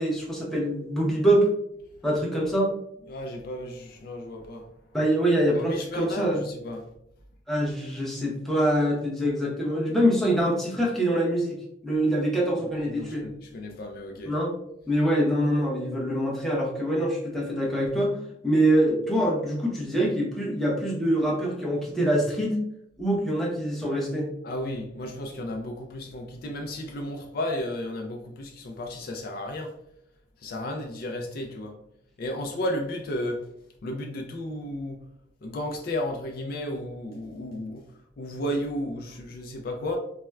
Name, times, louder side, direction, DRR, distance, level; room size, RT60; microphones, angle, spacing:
voice 1, 0.0-1.5 2.0-2.7 4.9-6.4 7.5-11.6 11.8-13.3 14.3-14.5 14.9-18.2 18.4-22.6 23.0-24.3, right 1 dB, ahead, 0.7 m, -24 dB
voice 2, 3.1-4.7 5.5-6.9 12.8-14.3 24.4-29.7 30.4-31.8 32.2-33.5 33.8-35.1 35.4-40.0, left 1 dB, 50° left, 0.4 m, -33 dB
4.2 x 2.1 x 2.2 m
head